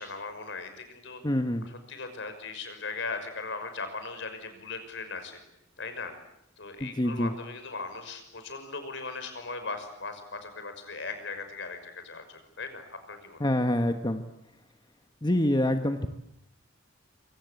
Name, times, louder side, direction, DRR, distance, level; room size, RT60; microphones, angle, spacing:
voice 1, 0.0-1.2 1.9-5.4 5.8-6.1 6.6-13.5, left 4 dB, 65° left, 8 dB, 6.0 m, -38 dB
voice 2, 1.2-1.7 6.8-7.3 13.4-14.2 15.2-16.1, left 1 dB, 20° left, 6 dB, 1.4 m, -26 dB
26.0 x 26.0 x 8.4 m, 0.80 s
head